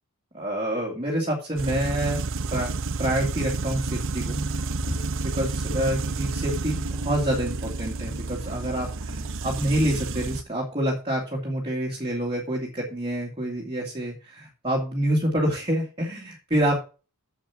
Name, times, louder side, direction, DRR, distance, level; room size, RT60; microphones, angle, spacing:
voice 1, 0.3-2.2 2.5-2.7 3.0-4.4 5.2-16.8, right 1 dB, 25° right, -1 dB, 2.3 m, -27 dB
sound 1, 1.5-10.4, right 3 dB, 60° right, 0.8 m, -30 dB
sound 2, 4.3-10.5, equal, 50° left, 4.8 m, -43 dB
7.7 x 7.4 x 5.9 m, 0.34 s
head